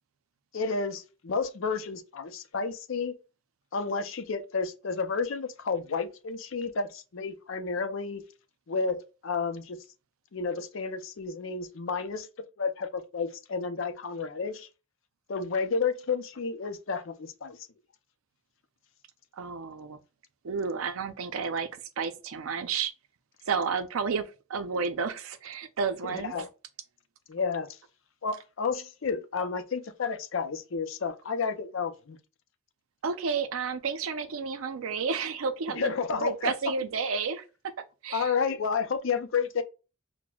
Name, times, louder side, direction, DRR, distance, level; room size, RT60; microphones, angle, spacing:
voice 1, 0.5-3.1 3.7-8.2 8.7-9.8 10.3-12.3 12.6-14.7 15.3-17.6 26.0-26.5 27.3-27.7 28.2-32.2 35.8-36.5 38.1-39.6, left 5 dB, 70° left, 0.5 m, -31 dB
voice 2, 19.4-20.0 20.4-21.7 22.0-22.9 23.5-26.3 33.0-37.7 38.0-38.3, right 5 dB, 90° right, 0.5 m, -31 dB
5.8 x 2.1 x 2.3 m
head